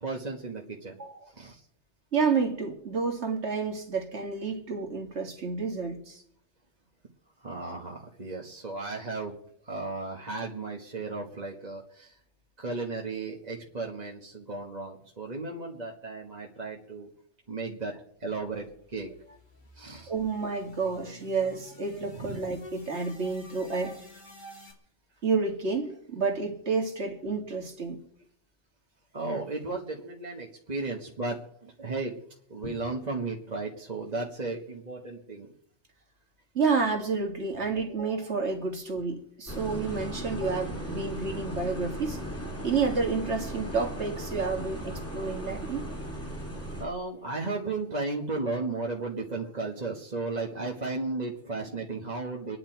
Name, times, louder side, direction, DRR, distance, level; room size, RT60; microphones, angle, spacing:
voice 1, 0.0-1.0 1.3-1.6 7.4-9.3 9.6-12.2 12.6-17.1 17.5-17.9 18.2-19.4 19.7-20.1 22.1-22.4 29.1-32.1 32.5-35.5 43.7-43.8 46.2-46.4 46.8-52.6, right 3 dB, 35° right, 1.6 m, -35 dB
voice 2, 2.1-6.2 20.1-24.0 25.2-28.0 36.5-42.2 42.6-45.9, right 4 dB, 70° right, 2.3 m, -30 dB
sound 1, 18.5-24.7, right 1 dB, 40° left, 3.3 m, -50 dB
sound 2, 39.5-46.9, equal, 10° left, 2.3 m, -37 dB
26.0 x 10.0 x 4.5 m
omnidirectional pair, 1.2 m